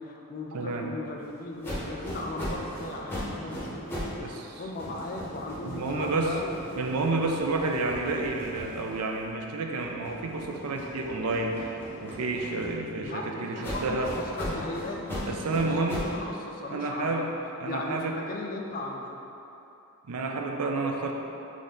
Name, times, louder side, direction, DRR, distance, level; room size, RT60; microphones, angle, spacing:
voice 1, 0.0-6.6 13.0-17.3 17.6-19.2, left 2 dB, 40° left, 1 dB, 0.4 m, -37 dB
voice 2, 0.5-0.9 4.2-4.3 5.6-6.3 6.8-14.1 15.3-16.0 16.7-17.3 17.6-18.1 20.1-21.1, right 3 dB, 85° right, 2 dB, 0.5 m, -30 dB
sound 1, 1.6-4.2 4.5-9.3 9.7-13.1 13.6-16.2, equal, 10° left, 0.9 m, -38 dB
3.9 x 3.2 x 3.8 m, 3.0 s
head